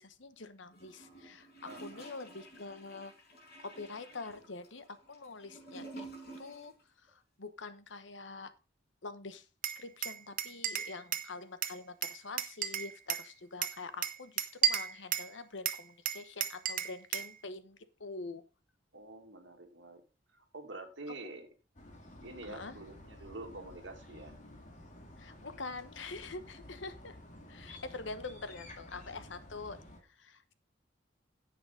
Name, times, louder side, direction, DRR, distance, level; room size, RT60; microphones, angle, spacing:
voice 1, 0.0-3.1 3.6-6.1 6.4-8.5 9.0-18.4 21.1-21.2 22.4-22.7 25.1-27.2 27.5-30.5, left 3 dB, 75° left, 12 dB, 1.0 m, -45 dB
Gurgling / Toilet flush, 0.7-6.8 7.1-7.2, right 2 dB, 60° left, 5.3 m, -51 dB
voice 2, 1.7-2.1 18.9-20.0 20.3-21.5 22.2-24.3, right 2 dB, 70° right, 4 dB, 2.1 m, -47 dB
Glass, 9.6-11.3 11.6-13.3 13.6-15.3 15.7-17.3, right 10 dB, 45° right, 0.9 m, -34 dB
sound 1, 21.8-30.0, left 1 dB, 40° left, 2.2 m, -52 dB
9.9 x 8.0 x 3.8 m, 0.28 s
head